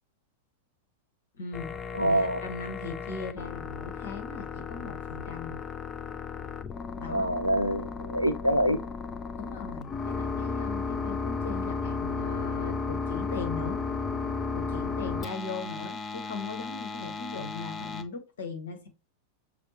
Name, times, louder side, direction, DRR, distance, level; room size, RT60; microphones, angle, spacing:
voice 1, 1.4-5.6 6.9-7.3 9.4-13.8 14.5-18.9, left 4 dB, 65° left, 1.3 m, -39 dB
sound 1, 1.5-18.0, left 4 dB, 20° left, 0.5 m, -34 dB
voice 2, 1.9-2.4 7.1-8.8, right 1 dB, 90° right, 0.5 m, -25 dB
6.5 x 2.2 x 3.1 m
figure-of-eight pair, 90°, 0 cm